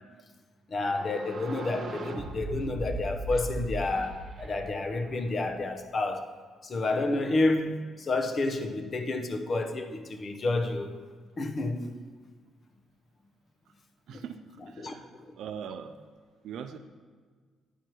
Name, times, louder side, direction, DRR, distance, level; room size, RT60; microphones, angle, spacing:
voice 1, 0.7-6.3 6.6-10.9 11.4-11.8 14.1-14.2 14.8-14.9, left 2 dB, 40° left, 0.8 m, -30 dB
sound 1, 0.8-5.6, right 2 dB, 55° right, 1.1 m, -38 dB
voice 2, 14.1-15.0 15.4-15.9 16.4-16.8, right 7 dB, 75° right, 0.4 m, -40 dB
9.9 x 4.4 x 4.7 m
cardioid pair, 90°, 0 cm